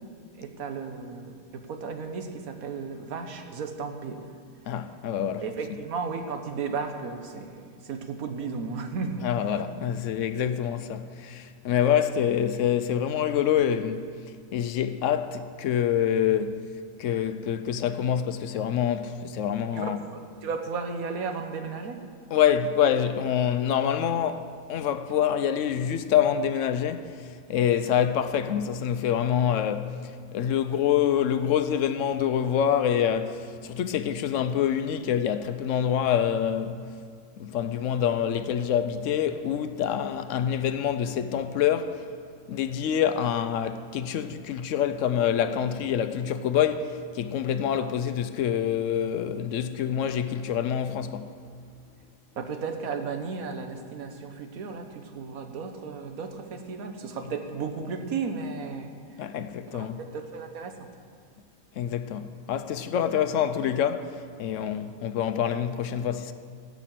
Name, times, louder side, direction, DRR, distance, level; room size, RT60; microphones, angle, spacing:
voice 1, 0.4-4.3 5.4-9.6 19.7-22.0 52.3-58.9 59.3-59.4 59.7-60.7, right 5 dB, 90° right, 1.4 m, -34 dB
voice 2, 4.7-5.5 9.2-14.1 14.5-16.6 17.0-20.0 22.3-36.9 37.4-42.1 42.5-51.3 59.2-60.0 61.8-66.3, left 9 dB, 70° left, 0.9 m, -26 dB
16.5 x 5.9 x 7.5 m
omnidirectional pair, 1.5 m